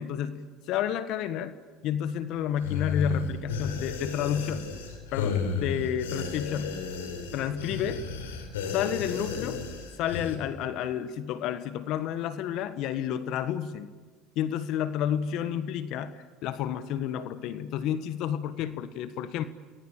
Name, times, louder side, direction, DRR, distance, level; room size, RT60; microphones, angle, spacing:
voice 1, 0.0-1.5 1.8-4.7 5.1-6.8 7.3-8.0 8.7-9.6 10.0-13.9 14.3-19.4, left 9 dB, 60° left, 12 dB, 1.4 m, -30 dB
sound 1, 2.6-10.4, left 5 dB, 85° left, 4.3 m, -33 dB
29.5 x 20.5 x 8.8 m, 1.4 s
hypercardioid pair, 75°, 0 cm